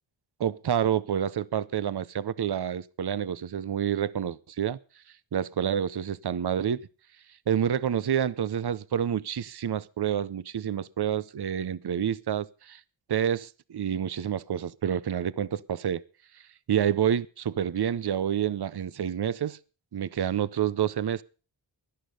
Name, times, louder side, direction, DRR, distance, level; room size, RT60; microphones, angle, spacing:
voice 1, 0.4-4.8 5.3-6.9 7.5-12.8 13.1-16.0 16.7-19.6 19.9-21.2, right 9 dB, 55° right, 0.8 m, -28 dB
17.0 x 11.5 x 5.3 m
cardioid pair, 60°, 47 cm